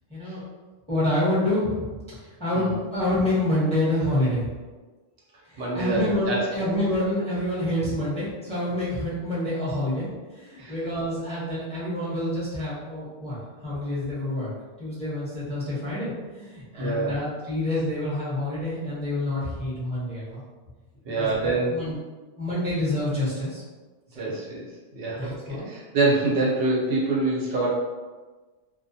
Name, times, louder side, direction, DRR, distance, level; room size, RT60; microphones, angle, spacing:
voice 1, 0.1-0.4 0.9-1.9 2.4-4.5 5.5-10.1 10.3-13.4 13.6-14.5 14.8-20.4 21.1-22.0 22.4-23.6 24.1-24.3 25.1-25.7, left 1 dB, 5° left, -10 dB, 0.8 m, -27 dB
voice 2, 5.6-6.6 10.6-10.7 16.8-17.2 21.0-21.9 24.1-24.6 24.9-27.7, right 3 dB, 80° right, -4 dB, 1.0 m, -26 dB
2.3 x 2.1 x 2.6 m, 1.3 s
omnidirectional pair, 1.2 m